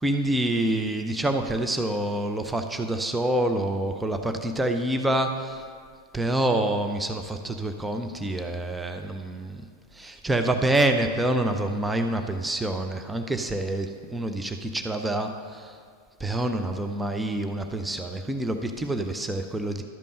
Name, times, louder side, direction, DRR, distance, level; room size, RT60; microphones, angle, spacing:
voice 1, 0.0-5.7 6.1-9.6 9.9-15.8 16.2-19.8, right 1 dB, 5° right, 6 dB, 0.6 m, -27 dB
12.0 x 5.3 x 6.6 m, 2.1 s
figure-of-eight pair, 90°, 0 cm